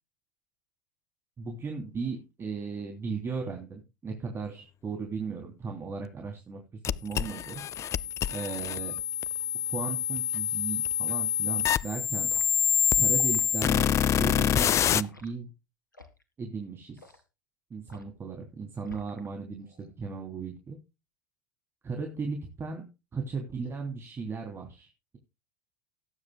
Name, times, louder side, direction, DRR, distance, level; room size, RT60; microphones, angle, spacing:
voice 1, 1.4-6.6 7.0-7.6 8.3-9.0 9.7-12.3 12.9-15.5 16.4-17.2 17.7-20.8 21.8-24.9, right 4 dB, 25° right, 3 dB, 3.1 m, -36 dB
sound 1, 6.8-15.0, left 9 dB, 30° left, 0.6 m, -26 dB
Liquid, 12.3-12.5 13.1-13.5 14.1-14.4 15.0-15.3 15.9-16.2 17.0-17.2 17.9-18.2 18.8-19.3 19.6-19.9, left 3 dB, 85° left, 1.9 m, -49 dB
18.5 x 9.7 x 2.2 m, 0.27 s
figure-of-eight pair, 80°, 10 cm